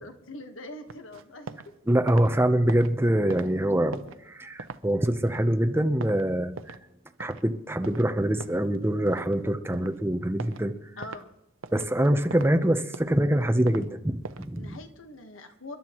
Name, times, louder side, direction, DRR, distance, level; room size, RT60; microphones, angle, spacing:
voice 1, 0.0-1.6 11.0-11.3 14.5-15.8, left 1 dB, 75° left, 6 dB, 1.5 m, -43 dB
sound 1, 0.9-1.7 2.0-6.9 7.2-7.4 7.8-9.4 9.7-10.0 10.4-10.7 11.0-11.2 11.6-12.5 12.8-13.8 14.2-14.6, right 4 dB, 80° right, 0.7 m, -41 dB
voice 2, 1.9-6.7 7.2-10.7 11.7-14.8, right 1 dB, 10° right, 7 dB, 0.8 m, -25 dB
29.5 x 11.5 x 3.1 m, 0.88 s
head